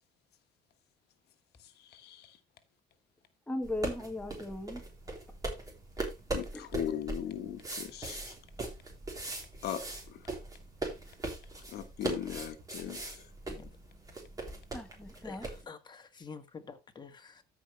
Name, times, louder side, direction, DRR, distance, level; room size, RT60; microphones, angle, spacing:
voice 1, 1.6-2.4 6.3-8.2 9.6-9.8 10.1-10.2 11.7-13.2, left 10 dB, 75° left, 1.3 m, -38 dB
voice 2, 3.5-4.8 6.5-6.7 14.7-15.5, left 1 dB, 5° left, 1.2 m, -38 dB
sound 1, 3.6-15.6, right 2 dB, 20° right, 3.4 m, -40 dB
voice 3, 15.2-17.4, left 5 dB, 25° left, 1.6 m, -48 dB
13.5 x 5.1 x 3.3 m
cardioid pair, 110°, 17 cm